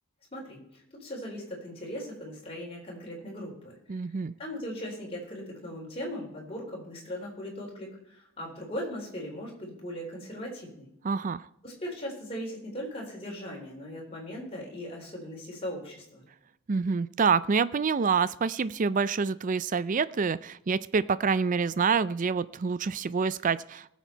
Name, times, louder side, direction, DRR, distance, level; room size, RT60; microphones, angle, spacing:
voice 1, 0.3-3.7 4.1-4.2 4.4-10.9 11.6-16.2, equal, 25° left, -3 dB, 3.8 m, -39 dB
voice 2, 3.9-4.3 11.0-11.4 16.7-23.9, right 5 dB, 35° right, 17 dB, 0.4 m, -27 dB
19.0 x 7.3 x 4.5 m, 0.79 s
head